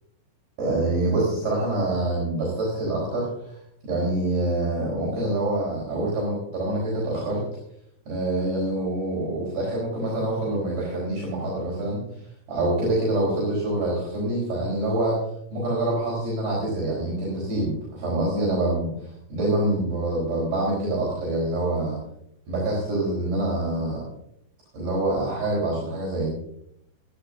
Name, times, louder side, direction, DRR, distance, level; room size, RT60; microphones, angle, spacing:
voice 1, 0.6-3.3 3.8-7.4 8.1-12.1 12.5-15.2 15.5-22.0 22.5-24.0 24.7-26.3, right 2 dB, 55° right, -6 dB, 5.9 m, -26 dB
24.0 x 10.0 x 2.6 m, 0.75 s
omnidirectional pair, 5.4 m